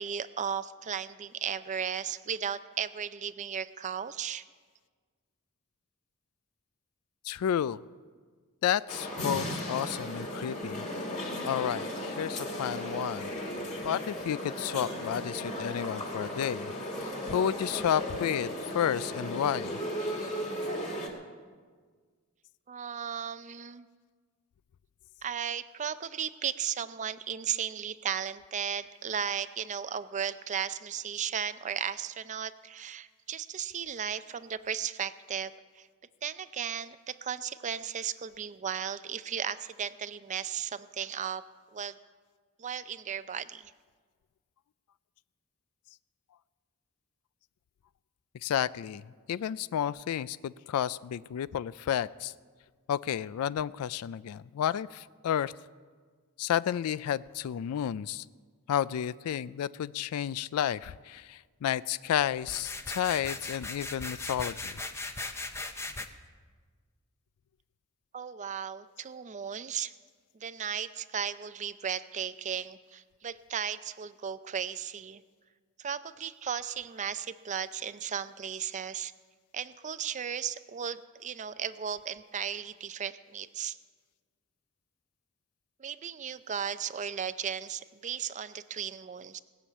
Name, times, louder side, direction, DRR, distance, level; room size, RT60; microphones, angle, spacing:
voice 1, 0.0-4.4 22.7-23.9 25.2-35.9 36.2-41.4 41.7-42.0 42.6-43.7 68.1-69.9 70.4-75.2 75.8-79.1 79.5-83.8 85.8-89.4, right 8 dB, 35° right, 14 dB, 0.4 m, -35 dB
voice 2, 7.2-7.8 8.6-10.9 11.4-13.3 13.8-16.7 17.0-19.8 48.4-49.0 49.3-52.3 52.9-55.5 56.4-58.2 58.7-64.8, left 9 dB, 75° left, 17 dB, 0.3 m, -31 dB
sound 1, 8.9-21.1, equal, 30° left, 2.3 m, -36 dB
sound 2, 62.4-66.1, left 2 dB, 10° left, 0.7 m, -38 dB
19.5 x 7.1 x 8.4 m, 1.6 s
head